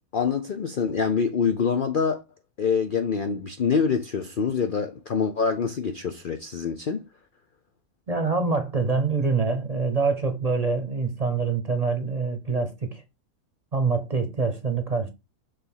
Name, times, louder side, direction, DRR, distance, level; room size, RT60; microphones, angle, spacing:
voice 1, 0.0-2.2 2.6-7.0, left 6 dB, 55° left, 0.6 m, -25 dB
voice 2, 8.1-13.0 13.7-15.1, right 4 dB, 30° right, 0.9 m, -25 dB
6.7 x 3.1 x 5.5 m
omnidirectional pair, 1.5 m